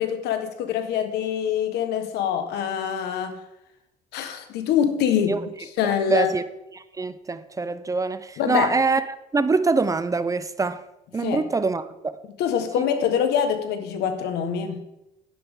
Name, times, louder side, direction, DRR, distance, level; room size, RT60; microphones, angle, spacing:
voice 1, 0.0-3.4 4.1-6.3 8.4-8.7 11.2-11.4 12.4-14.8, left 8 dB, 80° left, 1.4 m, -25 dB
voice 2, 5.8-6.4 6.7-10.8 11.1-11.8, right 4 dB, 20° right, 0.6 m, -24 dB
11.0 x 10.0 x 3.7 m
cardioid pair, 110°, 17 cm